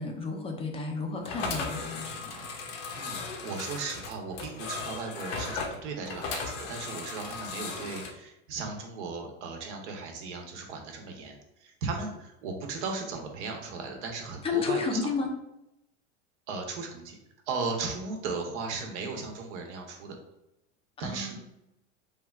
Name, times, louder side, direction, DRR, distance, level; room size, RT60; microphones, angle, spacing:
voice 1, 0.0-2.4 14.4-15.3 21.0-21.4, left 4 dB, 15° left, 3 dB, 0.4 m, -32 dB
sound 1, 1.2-8.1, left 4 dB, 60° left, 0.7 m, -37 dB
voice 2, 3.0-15.0 16.5-17.2 17.5-20.2 21.0-21.4, right 4 dB, 70° right, 3 dB, 0.8 m, -36 dB
3.3 x 2.3 x 2.3 m, 0.85 s
hypercardioid pair, 100°, 36 cm